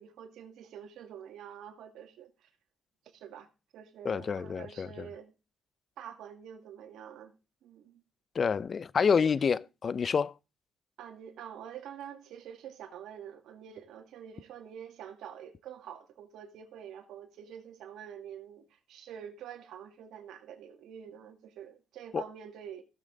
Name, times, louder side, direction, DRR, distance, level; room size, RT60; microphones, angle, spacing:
voice 1, 0.0-2.5 3.1-3.5 3.7-5.3 6.0-7.3 7.6-8.0 9.1-9.2 11.0-22.8, right 9 dB, 80° right, 2.0 m, -47 dB
voice 2, 4.0-5.1 8.3-10.3 22.1-22.2, left 6 dB, 45° left, 0.5 m, -28 dB
16.0 x 7.4 x 3.9 m
cardioid pair, 90°, 0 cm